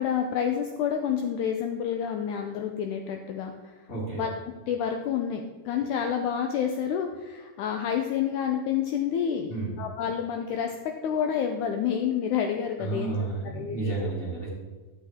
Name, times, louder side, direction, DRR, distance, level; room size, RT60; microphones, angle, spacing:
voice 1, 0.0-3.7 4.2-4.3 4.7-9.5 9.8-13.2 13.5-13.9, left 8 dB, 80° left, 4 dB, 1.7 m, -29 dB
voice 2, 3.9-4.2 9.5-9.7 12.8-14.5, right 3 dB, 15° left, -5 dB, 2.8 m, -31 dB
12.5 x 7.6 x 3.6 m, 1.3 s
omnidirectional pair, 4.2 m